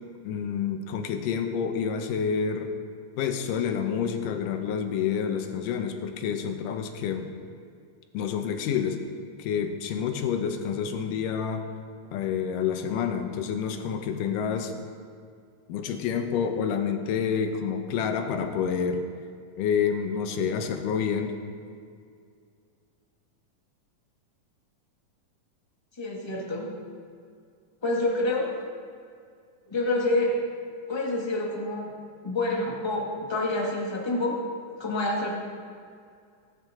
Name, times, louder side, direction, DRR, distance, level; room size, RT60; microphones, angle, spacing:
voice 1, 0.2-2.7 3.2-7.3 8.1-9.0 9.4-11.7 12.1-14.7 15.7-19.1 19.6-21.4, left 7 dB, 80° left, 6 dB, 2.4 m, -28 dB
voice 2, 26.0-26.7 27.8-28.5 29.7-30.3 30.9-31.9 32.2-34.4 34.8-35.4, left 2 dB, 15° left, -3 dB, 0.8 m, -27 dB
17.5 x 9.3 x 3.7 m, 2.2 s
omnidirectional pair, 4.0 m